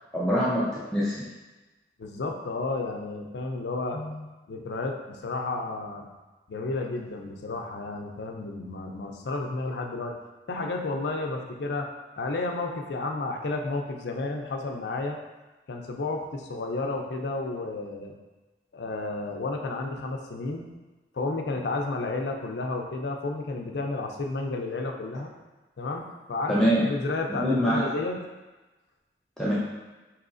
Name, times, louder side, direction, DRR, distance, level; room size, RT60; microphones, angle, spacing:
voice 1, 0.1-1.3 26.5-26.8 27.4-27.8 29.4-29.5, equal, 5° left, -9 dB, 0.5 m, -24 dB
voice 2, 2.0-6.1 6.5-10.2 10.5-11.9 12.2-15.2 15.7-18.2 18.7-20.7 21.1-25.3 25.8-28.2, left 3 dB, 75° left, 2 dB, 0.5 m, -32 dB
4.8 x 2.9 x 2.5 m, 1.2 s
head